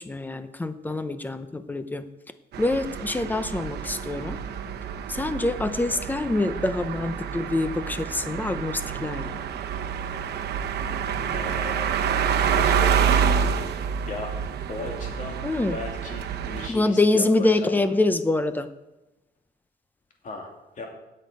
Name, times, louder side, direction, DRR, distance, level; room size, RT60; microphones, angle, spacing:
voice 1, 0.0-2.1 2.6-4.4 5.1-9.4 15.4-15.8 16.7-18.7, left 2 dB, 10° left, 11 dB, 0.6 m, -25 dB
sound 1, 2.5-16.7, right 7 dB, 80° right, 0.9 m, -27 dB
voice 2, 11.0-12.2 12.5-14.4 14.7-17.8 20.2-20.9, left 3 dB, 50° left, 1 dB, 2.6 m, -37 dB
17.5 x 6.5 x 5.4 m, 1.0 s
wide cardioid pair, 170°, 17 cm